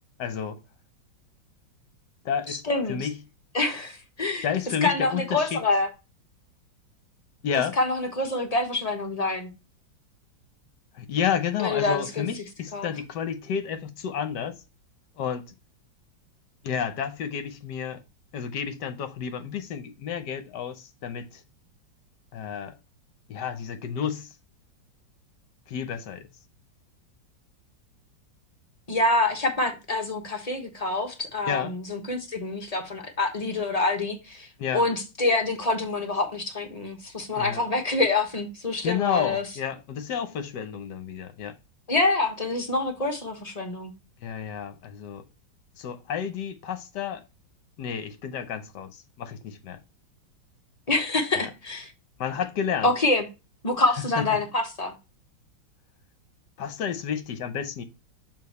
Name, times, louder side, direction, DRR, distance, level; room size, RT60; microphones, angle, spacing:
voice 1, 0.2-0.6 2.2-2.6 2.9-3.1 4.4-5.6 7.4-7.8 10.9-14.6 15.2-15.5 16.6-18.0 18.3-21.4 22.3-22.8 23.3-24.3 25.7-26.3 31.5-31.7 34.6-34.8 37.4-37.6 38.8-41.6 44.2-45.2 45.8-47.2 47.8-49.8 51.4-51.5 52.2-52.9 54.2-54.4 56.6-57.8, left 8 dB, 70° left, 1.3 m, -31 dB
voice 2, 2.5-3.1 3.5-4.5 4.8-5.9 7.8-9.5 11.6-12.3 12.7-12.9 28.9-39.4 41.9-43.9 50.9-51.9 52.8-53.3 53.6-54.9, left 2 dB, 25° left, 0.9 m, -26 dB
6.7 x 4.0 x 4.2 m
omnidirectional pair, 2.1 m